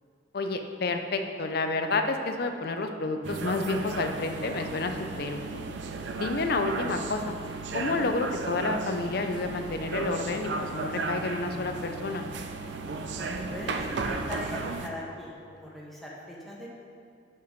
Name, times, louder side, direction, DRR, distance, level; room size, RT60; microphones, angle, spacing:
voice 1, 0.3-5.7 6.2-7.3 7.7-12.2, left 3 dB, 55° left, 6 dB, 0.5 m, -30 dB
sound 1, 3.2-14.9, right 3 dB, 75° right, 0.5 m, -35 dB
voice 2, 13.2-16.7, left 1 dB, ahead, -5 dB, 1.1 m, -40 dB
5.9 x 5.5 x 5.2 m, 2.3 s
head